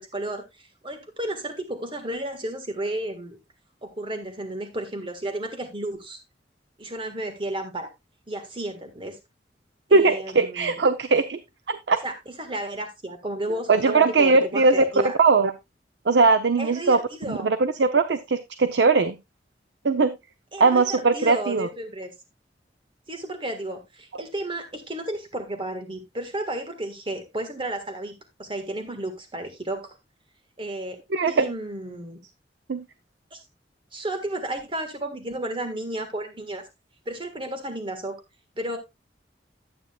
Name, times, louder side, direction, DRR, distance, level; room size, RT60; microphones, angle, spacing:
voice 1, 0.0-3.4 3.8-6.2 6.8-7.9 8.3-9.2 9.9-10.8 12.0-15.1 16.6-17.6 20.5-22.1 23.1-28.1 28.4-29.9 30.6-31.0 31.3-32.2 33.3-33.4 33.9-36.7 37.0-38.2 38.6-38.8, right 1 dB, 30° right, 1.6 m, -33 dB
voice 2, 9.9-11.4 11.7-12.0 13.7-14.8 15.2-15.5 16.1-17.0 17.3-19.2 19.8-20.1 20.6-21.7 31.1-31.4 32.7-32.8, right 4 dB, 85° right, 0.6 m, -20 dB
12.0 x 8.7 x 2.3 m
head